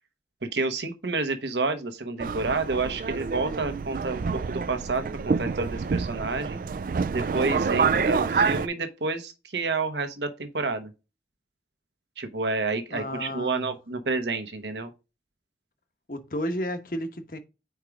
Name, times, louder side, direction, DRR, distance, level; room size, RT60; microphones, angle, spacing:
voice 1, 0.4-6.6 7.1-10.9 12.2-14.9, right 3 dB, 85° right, 1.1 m, -29 dB
Subway metro underground, 2.2-8.7, right 5 dB, 50° right, 0.3 m, -27 dB
voice 2, 12.9-13.7 16.1-17.4, equal, 50° left, 1.1 m, -32 dB
5.0 x 4.6 x 4.7 m
head